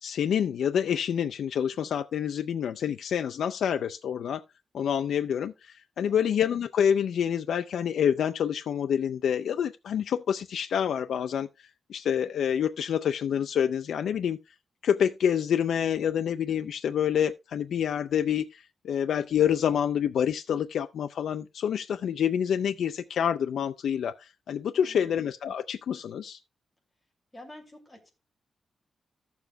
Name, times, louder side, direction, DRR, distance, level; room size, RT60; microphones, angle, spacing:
voice 1, 0.0-4.4 4.7-14.4 14.8-26.4, left 8 dB, 80° left, 0.4 m, -27 dB
voice 2, 6.0-6.4 24.7-25.2 27.3-28.1, left 1 dB, 10° left, 2.5 m, -49 dB
14.5 x 7.0 x 2.2 m
wide cardioid pair, 170°, 0 cm